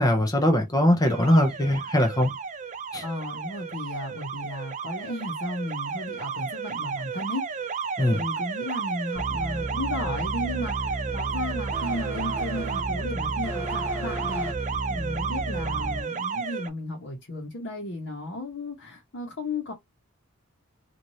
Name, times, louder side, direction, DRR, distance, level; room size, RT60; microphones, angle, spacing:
voice 1, 0.0-2.3 2.9-3.0 8.0-8.2, left 1 dB, 15° left, 0.5 m, -21 dB
Alarm, 1.0-16.7, right 5 dB, 35° right, 0.4 m, -32 dB
voice 2, 3.0-7.5 8.1-19.7, left 1 dB, 55° left, 1.0 m, -34 dB
sound 1, 9.2-16.0, right 2 dB, 10° right, 0.9 m, -33 dB
3.1 x 2.5 x 2.7 m
head